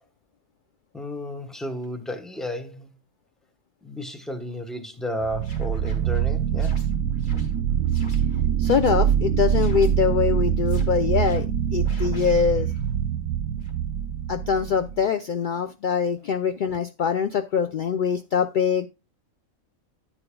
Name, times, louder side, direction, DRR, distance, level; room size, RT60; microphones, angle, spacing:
voice 1, 0.9-2.9 3.8-6.8, equal, ahead, 0.9 m, -33 dB
sound 1, 5.2-15.0, right 9 dB, 85° right, 1.1 m, -24 dB
sound 2, 5.3-9.1 9.4-9.9 10.4-10.8 11.2-11.4 11.8-13.0 13.6-13.7 14.5-14.8, left 1 dB, 35° left, 1.9 m, -48 dB
voice 2, 8.6-11.5 11.7-12.7 14.3-18.9, left 7 dB, 70° left, 0.4 m, -23 dB
10.5 x 8.9 x 2.2 m
omnidirectional pair, 1.4 m